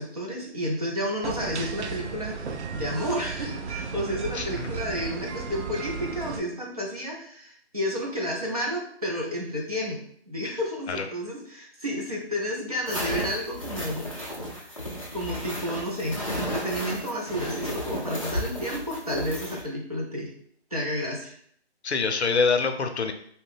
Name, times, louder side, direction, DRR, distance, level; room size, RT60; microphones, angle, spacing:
voice 1, 0.0-10.0 10.3-14.1 14.6-14.7 15.1-20.3 20.7-21.4, equal, 35° right, -3 dB, 0.6 m, -31 dB
sound 1, 1.2-6.4, right 5 dB, 90° right, 0.5 m, -34 dB
voice 2, 4.3-4.7 10.9-11.0 21.8-23.1, left 4 dB, 80° left, 6 dB, 0.6 m, -25 dB
sound 2, 12.9-19.6, equal, 30° left, 0.5 m, -33 dB
2.9 x 2.1 x 3.3 m, 0.63 s
figure-of-eight pair, 170°, 33 cm